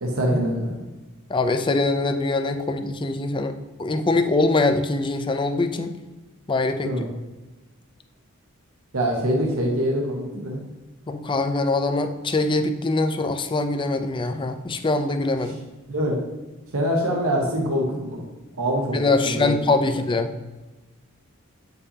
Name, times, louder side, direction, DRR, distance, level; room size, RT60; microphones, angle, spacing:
voice 1, 0.0-0.7 6.8-7.1 8.9-10.6 15.9-16.2 16.7-18.2 18.6-19.0 19.2-19.5, equal, 80° right, -1 dB, 1.2 m, -24 dB
voice 2, 1.3-5.9 6.5-6.9 11.1-15.6 18.9-20.3, left 2 dB, 25° left, 7 dB, 0.5 m, -23 dB
8.2 x 5.3 x 2.8 m, 1.2 s
head